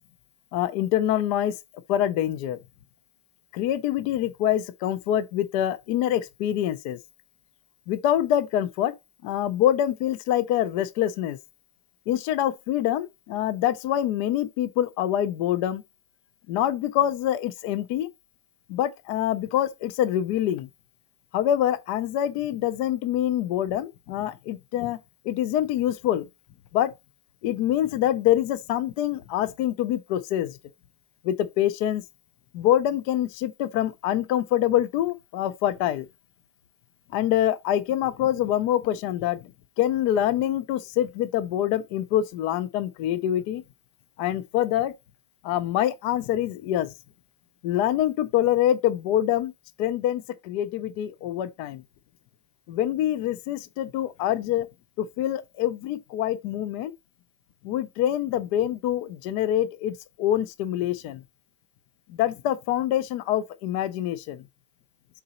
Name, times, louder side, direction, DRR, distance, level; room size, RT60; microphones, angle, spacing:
voice 1, 0.5-1.5 1.9-2.6 3.5-7.0 7.9-8.9 9.2-11.4 12.1-15.8 16.5-18.1 18.7-20.7 21.3-25.0 25.3-26.2 26.7-26.9 27.4-30.6 31.2-32.0 32.5-36.1 37.1-39.4 39.8-43.6 44.2-44.9 45.4-46.9 47.6-49.5 49.8-51.8 52.7-54.7 55.0-56.9 57.6-61.2 62.1-64.4, left 11 dB, 70° left, 1.1 m, -25 dB
6.8 x 3.9 x 4.1 m
omnidirectional pair, 2.0 m